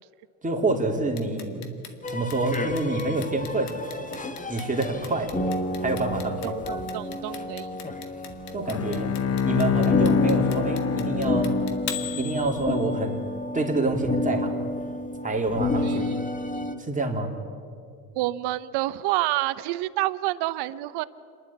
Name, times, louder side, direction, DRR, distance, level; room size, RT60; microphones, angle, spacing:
voice 1, 0.4-1.7 2.1-3.7 4.5-5.3 5.8-6.5 8.5-9.1 9.4-11.6 12.2-13.3 13.5-14.6 15.2-16.1 16.8-17.3, right 2 dB, 20° right, 1 dB, 3.2 m, -27 dB
Clock, 1.2-13.1, left 10 dB, 70° left, 2.1 m, -38 dB
sound 1, 2.0-9.2 9.7-16.7, left 2 dB, 20° left, 1.5 m, -30 dB
voice 2, 6.4-7.7 15.8-16.1 18.1-21.0, right 16 dB, 65° right, 15 dB, 0.9 m, -28 dB
Bowed string instrument, 8.6-12.2, left 7 dB, 35° left, 1.0 m, -26 dB
27.0 x 11.5 x 8.5 m, 2.4 s
supercardioid pair, 80°, 43 cm